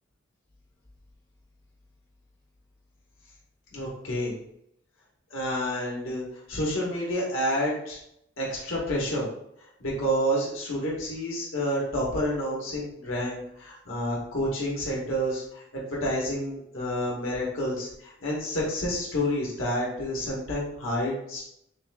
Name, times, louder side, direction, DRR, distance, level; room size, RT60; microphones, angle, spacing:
voice 1, 3.7-4.3 5.3-8.0 8.4-9.2 9.8-21.4, equal, 80° left, -5 dB, 1.2 m, -29 dB
6.7 x 2.4 x 2.2 m, 0.75 s
head